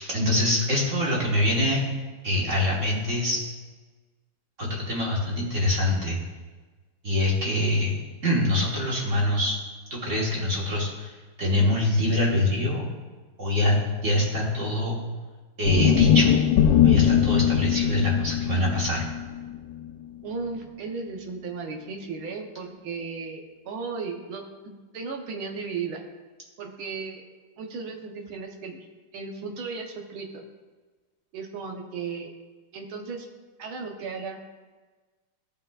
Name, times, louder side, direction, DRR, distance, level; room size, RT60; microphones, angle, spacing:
voice 1, 0.0-1.8 2.2-3.4 4.6-6.2 7.0-7.9 8.2-9.6 9.9-12.9 13.4-15.0 15.6-16.3 16.8-19.0, left 1 dB, 40° right, -4 dB, 1.6 m, -24 dB
sound 1, 15.6-19.9, left 10 dB, 75° left, 1.3 m, -21 dB
voice 2, 20.2-24.4 24.9-26.0 26.6-27.2 27.6-28.8 29.1-30.4 31.3-32.3 32.7-33.3 33.6-34.4, right 4 dB, 75° right, 3 dB, 1.7 m, -35 dB
15.5 x 5.5 x 2.4 m, 1.3 s
omnidirectional pair, 2.4 m